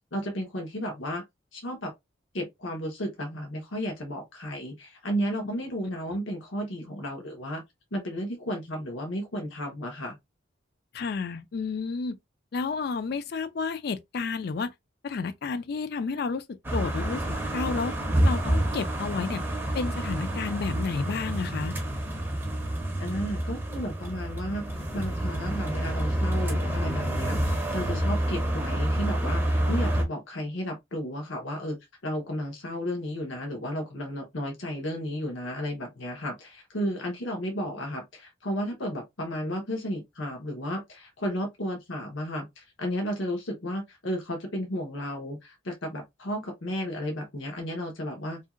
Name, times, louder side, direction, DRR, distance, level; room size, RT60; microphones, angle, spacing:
voice 1, 0.1-1.2 1.5-1.9 2.3-7.6 7.9-10.1 23.0-24.7 24.9-31.8 32.0-48.4, equal, 85° left, 1.0 m, -33 dB
voice 2, 10.9-12.2 12.5-14.7 15.0-17.2 17.5-18.0 18.2-19.4 19.7-21.7, left 5 dB, 55° left, 0.3 m, -31 dB
sound 1, 16.6-30.0, right 1 dB, 10° right, 0.5 m, -28 dB
2.8 x 2.7 x 2.4 m
head